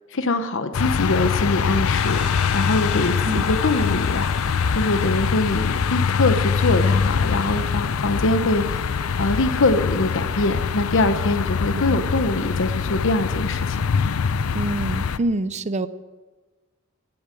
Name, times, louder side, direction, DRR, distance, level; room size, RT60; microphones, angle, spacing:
voice 1, 0.1-2.2 2.5-8.9 9.2-13.8, left 2 dB, 65° left, 9 dB, 0.9 m, -23 dB
sound 1, 0.7-15.2, left 6 dB, 85° left, 0.5 m, -23 dB
sound 2, 1.9-10.1, left 5 dB, ahead, 4.4 m, -39 dB
voice 2, 14.5-15.9, right 2 dB, 35° right, 14 dB, 0.6 m, -26 dB
17.5 x 8.8 x 7.5 m, 1.3 s
head